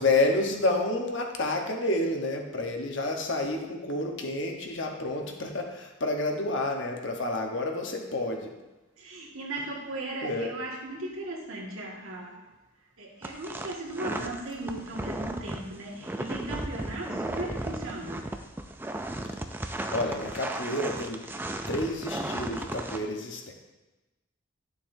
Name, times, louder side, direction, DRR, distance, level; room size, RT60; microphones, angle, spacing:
voice 1, 0.0-8.5 10.2-10.5 19.9-21.3 21.7-23.5, left 2 dB, 60° left, 2 dB, 1.1 m, -29 dB
voice 2, 9.0-12.5 13.0-18.3, right 2 dB, 90° right, -3 dB, 1.9 m, -37 dB
sound 1, 13.2-23.0, right 1 dB, 10° right, 0.4 m, -35 dB
11.0 x 7.0 x 2.7 m, 1.1 s
head